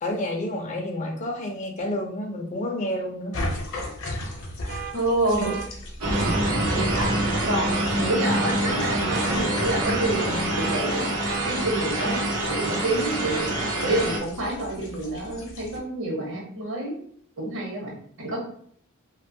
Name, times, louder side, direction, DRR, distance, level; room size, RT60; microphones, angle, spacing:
voice 1, 0.0-3.3 6.2-6.4, left 1 dB, 35° left, 2 dB, 0.4 m, -30 dB
sound 1, 3.3-15.8, left 1 dB, 60° left, 0.7 m, -37 dB
sound 2, 4.7-4.9 5.4-5.7 6.1-6.4 6.9-7.1 7.6-7.9 8.3-8.6 9.1-9.3 9.8-10.1 10.5-10.8 11.2-11.5 12.0-12.2, right 8 dB, 40° right, 0.3 m, -35 dB
voice 2, 4.9-5.6 6.2-6.3 6.8-7.1 7.5-11.1 11.4-12.2 12.5-13.5 13.8-17.0 17.4-18.4, right 1 dB, 60° right, -2 dB, 0.9 m, -28 dB
sound 3, 6.0-14.2, right 1 dB, 90° right, 0.8 m, -26 dB
2.6 x 2.2 x 2.6 m, 0.62 s
head